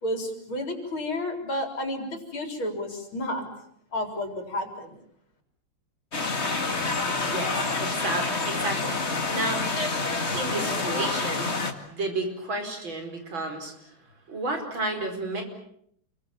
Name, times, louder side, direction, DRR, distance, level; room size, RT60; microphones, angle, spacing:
voice 1, 0.0-3.5 3.9-5.0, left 1 dB, 75° left, 5 dB, 4.9 m, -31 dB
sound 1, 6.1-11.7, left 3 dB, 30° left, 2.3 m, -28 dB
voice 2, 6.9-11.6 11.9-13.9 14.3-15.4, right 2 dB, 70° right, 4 dB, 5.7 m, -32 dB
28.5 x 23.0 x 7.3 m, 0.67 s
omnidirectional pair, 2.3 m